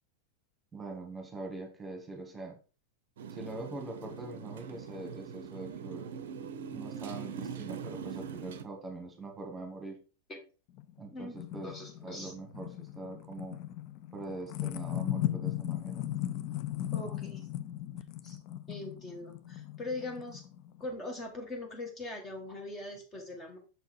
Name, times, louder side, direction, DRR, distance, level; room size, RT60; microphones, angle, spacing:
voice 1, 0.7-2.6 3.3-6.1 6.7-10.0 11.0-11.7 12.0-13.6 14.1-16.0, right 2 dB, 15° right, 2 dB, 1.8 m, -43 dB
Motorcycle, 3.2-8.7, right 7 dB, 60° right, 0.6 m, -42 dB
sound 1, 10.8-20.9, left 13 dB, 40° left, 0.5 m, -37 dB
voice 2, 11.1-12.3 16.9-17.5 18.2-18.4 18.7-20.4 20.8-23.6, left 2 dB, 20° left, 2 dB, 1.6 m, -41 dB
6.6 x 4.5 x 4.5 m, 0.35 s
figure-of-eight pair, 90°, 0 cm